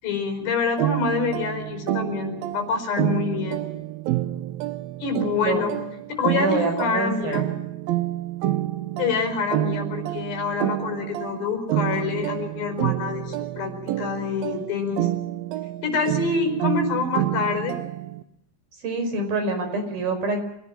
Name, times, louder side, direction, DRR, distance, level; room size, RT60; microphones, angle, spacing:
voice 1, 0.0-3.7 5.0-5.7 6.1-7.4 9.0-15.1 15.8-17.8, left 5 dB, 65° left, 5 dB, 7.0 m, -26 dB
sound 1, 0.8-18.2, right 14 dB, 75° right, 2.3 m, -28 dB
voice 2, 6.4-7.4 18.8-20.4, right 3 dB, 55° right, 6 dB, 6.5 m, -26 dB
28.0 x 17.5 x 7.5 m, 0.81 s
omnidirectional pair, 5.3 m